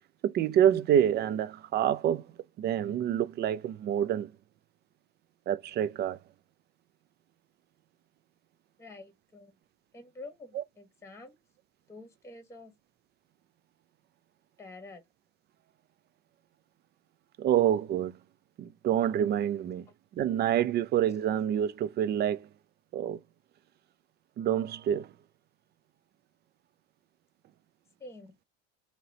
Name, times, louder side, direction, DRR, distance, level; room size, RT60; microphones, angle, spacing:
voice 1, 0.2-2.2 2.6-4.3 5.5-6.2 10.6-10.7 17.4-18.2 18.6-19.9 20.1-22.5 22.9-23.2 24.4-25.1, right 10 dB, 35° right, 0.4 m, -27 dB
voice 2, 8.8-9.6 9.9-11.3 11.9-12.7 14.6-15.0 28.0-28.3, left 2 dB, 10° left, 1.2 m, -48 dB
3.0 x 2.8 x 4.0 m
supercardioid pair, 100°, 30 cm